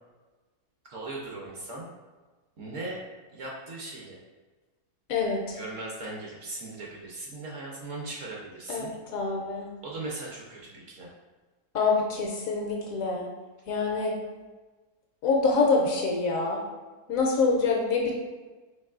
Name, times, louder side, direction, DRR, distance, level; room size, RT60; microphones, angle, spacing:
voice 1, 0.9-1.9 2.6-3.0 3.3-4.2 5.5-8.9 9.8-11.1, right 2 dB, 60° right, -3 dB, 0.9 m, -38 dB
voice 2, 5.1-5.6 8.7-9.7 11.7-13.3 13.7-14.2 15.2-16.6 17.1-18.1, left 4 dB, 70° left, -1 dB, 0.9 m, -26 dB
4.5 x 2.9 x 2.4 m, 1.3 s
omnidirectional pair, 1.7 m